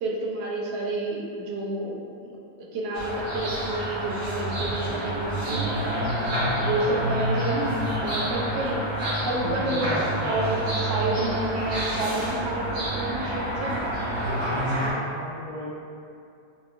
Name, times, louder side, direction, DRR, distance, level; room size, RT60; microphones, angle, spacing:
voice 1, 0.0-2.0 2.3-2.4 2.7-5.7 6.6-8.8 9.2-13.8, right 2 dB, 85° right, -1 dB, 1.2 m, -29 dB
sound 1, 2.9-14.9, right 1 dB, 50° right, 0.9 m, -28 dB
voice 2, 9.4-10.3 14.3-14.8 15.0-15.8, left 2 dB, 60° left, -13 dB, 0.4 m, -37 dB
4.4 x 2.4 x 2.4 m, 2.5 s
omnidirectional pair, 1.9 m